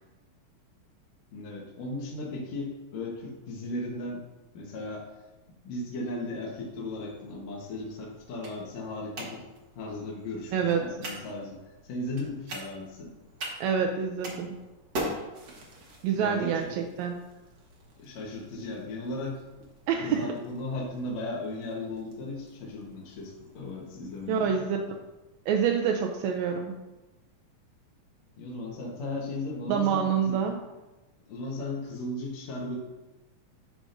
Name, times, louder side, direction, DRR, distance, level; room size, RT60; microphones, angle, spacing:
voice 1, 1.3-4.3 4.5-5.1 5.6-9.5 9.8-11.6 11.8-13.1 16.1-16.7 18.0-19.4 20.0-24.6 28.4-30.4 31.3-32.8, left 2 dB, 65° left, -3 dB, 2.3 m, -36 dB
sound 1, 6.5-24.4, right 1 dB, 55° right, 1.3 m, -44 dB
voice 2, 10.5-10.8 13.6-14.6 16.0-17.2 19.9-20.3 24.3-24.8 25.5-26.7 29.7-30.6, right 7 dB, 80° right, 3 dB, 1.7 m, -27 dB
11.5 x 5.0 x 2.5 m, 1.1 s
omnidirectional pair, 3.5 m